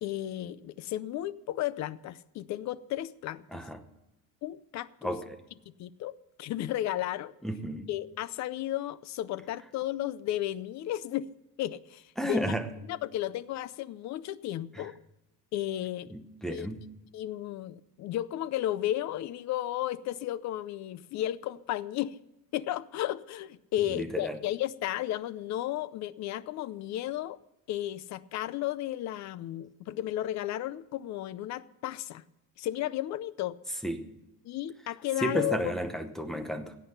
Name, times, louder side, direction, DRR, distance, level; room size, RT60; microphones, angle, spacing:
voice 1, 0.0-3.4 4.4-5.2 5.8-6.1 6.4-7.3 7.9-11.3 11.6-12.4 12.9-15.0 15.5-16.1 16.5-16.7 17.1-22.2 22.5-27.4 27.7-32.2 32.6-33.6 34.4-35.7, left 13 dB, 50° left, 17 dB, 0.6 m, -33 dB
voice 2, 5.0-5.4 7.4-7.9 12.2-12.7 14.7-14.9 16.1-16.9 23.9-24.4 33.8-34.1 35.2-36.8, right 1 dB, ahead, 7 dB, 0.9 m, -33 dB
17.0 x 8.5 x 5.5 m, 0.96 s
cardioid pair, 175°, 35 cm